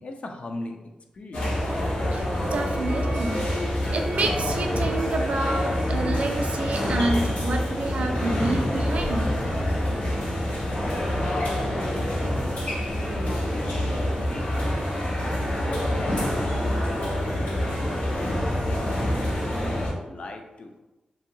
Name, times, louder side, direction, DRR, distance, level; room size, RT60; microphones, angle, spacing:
voice 1, 0.0-1.6 11.9-14.9 15.6-20.8, left 2 dB, 55° left, 3 dB, 0.4 m, -40 dB
sound 1, 1.3-19.9, left 1 dB, 80° left, 0.9 m, -26 dB
voice 2, 2.1-3.4 3.9-9.3, right 2 dB, 65° right, 3 dB, 0.4 m, -28 dB
2.8 x 2.6 x 2.6 m, 1.0 s
wide cardioid pair, 100°, 2 cm